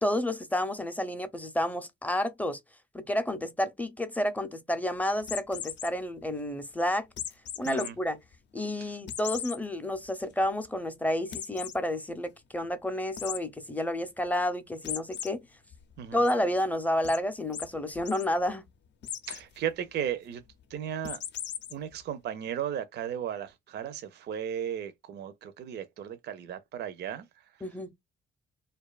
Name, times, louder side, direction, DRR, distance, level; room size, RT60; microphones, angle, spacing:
voice 1, 0.0-2.6 2.9-7.1 7.6-8.2 8.5-15.4 16.1-18.6 27.6-27.9, left 1 dB, 10° left, 0.5 m, -30 dB
sound 1, 5.2-5.9 7.2-7.9 8.3-8.4 9.1-9.6 10.1-10.2 10.4-10.5 11.3-11.8 13.2-13.4 14.8-15.3 15.7-16.3 17.0-17.2 17.5-17.7 17.9-18.3 19.0-19.4 21.0-21.7, left 10 dB, 60° left, 0.5 m, -37 dB
voice 2, 7.6-8.0 16.0-16.2 19.3-20.4 20.7-21.2 21.7-27.3, right 9 dB, 60° right, 0.5 m, -35 dB
2.5 x 2.3 x 2.2 m
cardioid pair, 90°, 20 cm